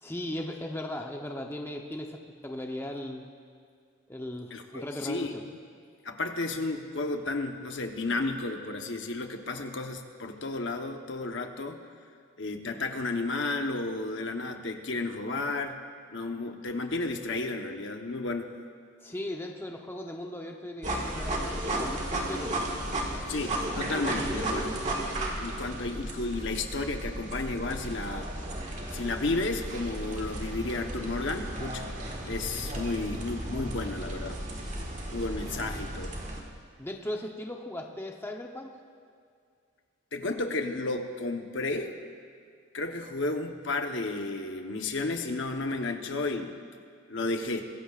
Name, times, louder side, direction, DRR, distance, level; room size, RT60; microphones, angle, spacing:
voice 1, 0.0-3.2 4.1-5.4 19.0-22.5 36.8-38.7, left 1 dB, 10° left, 1 dB, 0.8 m, -37 dB
voice 2, 4.5-5.3 6.0-11.8 12.4-15.8 16.1-18.5 23.3-24.8 25.4-28.3 28.9-31.9 32.2-34.4 35.1-36.1 40.1-41.9 42.7-46.6 47.1-47.7, left 2 dB, 60° left, 4 dB, 1.1 m, -32 dB
sound 1, 20.8-36.4, right 1 dB, 35° right, 1.7 m, -34 dB
24.0 x 15.0 x 2.5 m, 2.2 s
head